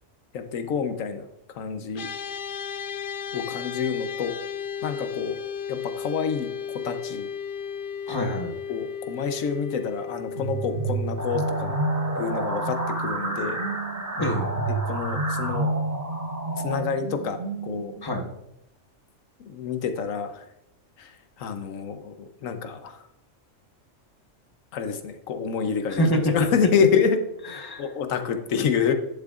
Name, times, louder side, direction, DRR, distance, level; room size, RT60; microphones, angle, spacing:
voice 1, 0.3-1.3 1.6-2.1 3.3-4.4 4.8-5.4 5.7-6.5 6.8-7.3 8.7-11.8 12.2-13.6 14.8-15.7 16.6-17.9 19.4-20.4 21.0-21.1 21.4-22.1 22.4-23.0 24.7-26.0 26.3-27.2 27.4-28.9, left 6 dB, 90° left, 8 dB, 1.2 m, -27 dB
sound 1, 1.9-13.4, left 7 dB, 50° left, 0.8 m, -35 dB
voice 2, 8.1-8.5 14.2-14.6 18.0-18.3 25.9-26.5 27.5-27.9, equal, 20° left, 3 dB, 1.1 m, -26 dB
sound 2, 10.3-18.0, right 3 dB, 90° right, 2.3 m, -30 dB
sound 3, 11.2-16.8, right 1 dB, 15° right, 1.3 m, -32 dB
11.0 x 7.1 x 2.4 m, 0.85 s
omnidirectional pair, 1.3 m